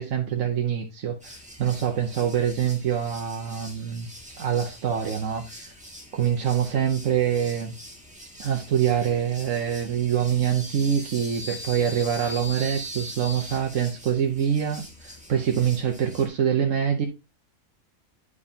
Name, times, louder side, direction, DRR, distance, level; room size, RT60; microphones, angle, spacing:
voice 1, 0.0-4.1 4.4-5.7 6.1-7.7 8.4-17.1, right 8 dB, 70° right, 1.3 m, -25 dB
sound 1, 1.2-16.3, equal, 5° right, 1.9 m, -42 dB
11.0 x 4.8 x 2.8 m
omnidirectional pair, 1.4 m